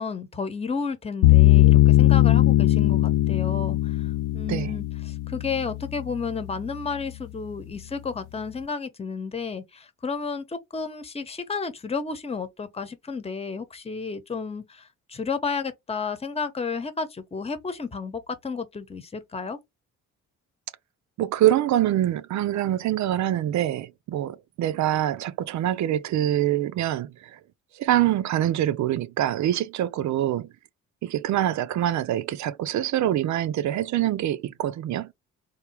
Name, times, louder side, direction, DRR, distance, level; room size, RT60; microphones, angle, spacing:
voice 1, 0.0-19.6, left 5 dB, 20° left, 1.0 m, -32 dB
sound 1, 1.2-6.3, left 17 dB, 80° left, 0.5 m, -19 dB
voice 2, 21.2-27.4 27.8-30.5 31.0-35.1, right 12 dB, 70° right, 0.6 m, -25 dB
3.5 x 2.8 x 4.5 m
cardioid pair, 90°, 30 cm